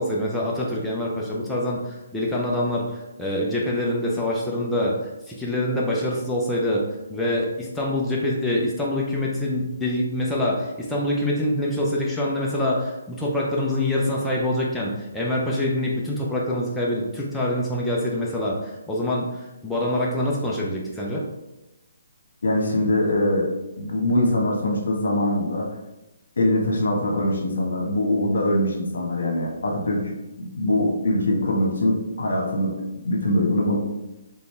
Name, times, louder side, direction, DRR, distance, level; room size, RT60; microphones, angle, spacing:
voice 1, 0.0-6.8 7.1-21.2, left 1 dB, 5° left, -5 dB, 0.6 m, -25 dB
voice 2, 22.4-23.5 23.8-25.7 26.4-32.7 33.0-33.8, left 1 dB, 75° left, 0 dB, 1.3 m, -23 dB
4.1 x 3.5 x 3.4 m, 0.99 s
hypercardioid pair, 155°, 0 cm